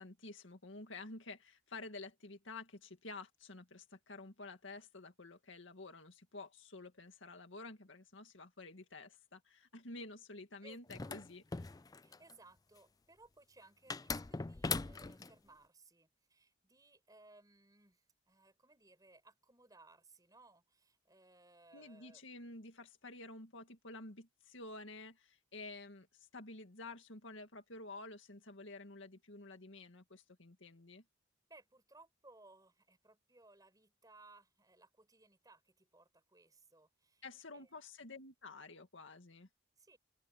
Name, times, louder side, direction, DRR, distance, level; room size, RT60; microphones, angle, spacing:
voice 1, 0.0-11.7 21.7-31.0 37.2-39.5, left 3 dB, 70° left, 2.1 m, -51 dB
sound 1, 10.9-12.3 13.9-15.3, left 4 dB, 20° left, 0.4 m, -40 dB
voice 2, 12.0-22.2 31.4-37.2 37.5-37.7 39.8-40.0, right 2 dB, 20° right, 7.7 m, -63 dB
open air
head